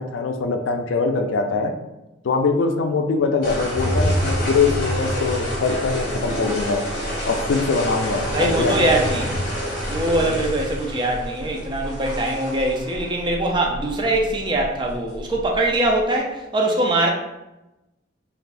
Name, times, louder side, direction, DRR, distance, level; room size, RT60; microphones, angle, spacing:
voice 1, 0.0-1.7 2.2-6.8 7.3-8.9 10.2-10.4, left 4 dB, 75° left, 5 dB, 0.4 m, -22 dB
sound 1, 3.4-16.0, equal, 55° left, 1.0 m, -27 dB
voice 2, 8.3-9.4 9.9-17.1, right 1 dB, 25° right, 0 dB, 0.4 m, -22 dB
3.3 x 2.5 x 2.5 m, 0.97 s
head